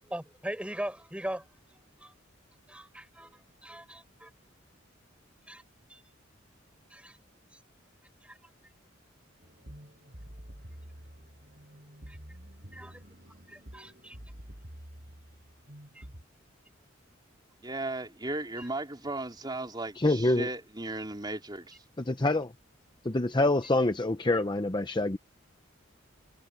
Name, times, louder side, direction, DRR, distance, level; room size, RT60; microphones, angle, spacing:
voice 1, 0.1-2.1 2.7-4.3 5.5-5.6 5.9-6.0 6.9-7.2 7.5-7.6 8.2-8.4 12.1-12.2 12.7-13.0 13.3-14.2 15.9-16.1 18.6-18.7, right 1 dB, 5° right, 6.4 m, -41 dB
sound 1, 9.4-16.2, equal, 50° right, 5.0 m, -49 dB
voice 2, 17.6-21.8, right 2 dB, 20° right, 3.8 m, -36 dB
voice 3, 20.0-20.5 22.0-22.5 23.0-25.2, left 2 dB, 25° left, 0.7 m, -26 dB
head